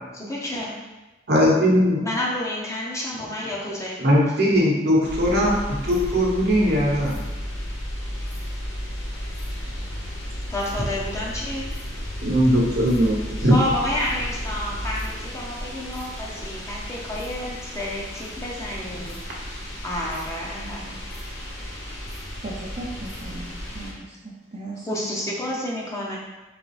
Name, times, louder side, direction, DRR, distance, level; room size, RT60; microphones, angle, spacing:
voice 1, 0.2-0.7 2.0-4.0 10.5-11.7 13.4-19.5 19.8-21.0 24.8-26.2, left 1 dB, 15° left, -4 dB, 0.7 m, -30 dB
voice 2, 1.3-2.0 4.0-7.2 12.2-13.5, equal, 60° right, -3 dB, 0.9 m, -19 dB
sound 1, 5.0-23.9, equal, 80° left, 0.9 m, -33 dB
voice 3, 22.4-23.5 23.7-25.0, right 2 dB, 35° right, -5 dB, 0.5 m, -36 dB
3.9 x 3.5 x 3.2 m, 1.1 s
head